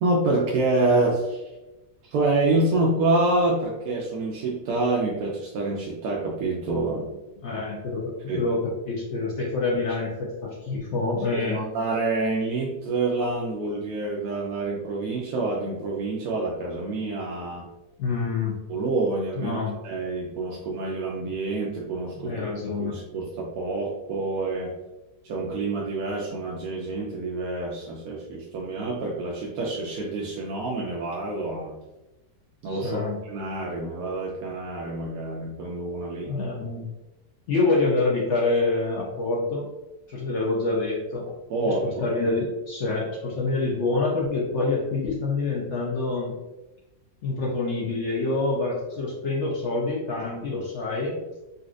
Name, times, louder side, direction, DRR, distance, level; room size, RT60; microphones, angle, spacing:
voice 1, 0.0-1.4 2.0-7.2 8.3-8.4 11.3-17.7 18.7-22.3 22.8-24.7 25.2-31.7 32.6-36.3 41.5-41.9, right 2 dB, 70° right, -3 dB, 0.9 m, -27 dB
voice 2, 7.4-11.6 18.0-18.5 19.4-19.8 22.2-23.0 32.6-33.2 36.3-36.9 37.5-39.7 40.1-41.3 41.6-46.3 47.2-51.2, left 3 dB, 70° left, -4 dB, 0.6 m, -26 dB
4.0 x 2.4 x 2.4 m, 1.0 s
omnidirectional pair, 2.0 m